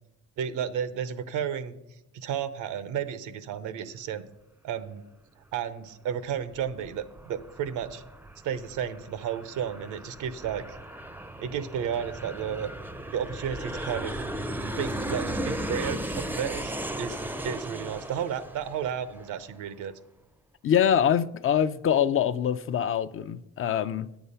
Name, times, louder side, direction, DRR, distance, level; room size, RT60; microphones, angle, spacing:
voice 1, 0.4-1.7 2.1-4.2 4.6-5.0 5.5-8.0 8.4-10.8 11.4-12.7 13.1-14.2 14.8-16.7 17.0-17.2 17.4-19.9, right 8 dB, 90° right, 0.8 m, -32 dB
Aircraft, 6.3-19.6, right 1 dB, 5° right, 0.5 m, -36 dB
voice 2, 20.6-24.1, left 9 dB, 45° left, 0.5 m, -24 dB
9.5 x 7.0 x 5.5 m
cardioid pair, 90°, 30 cm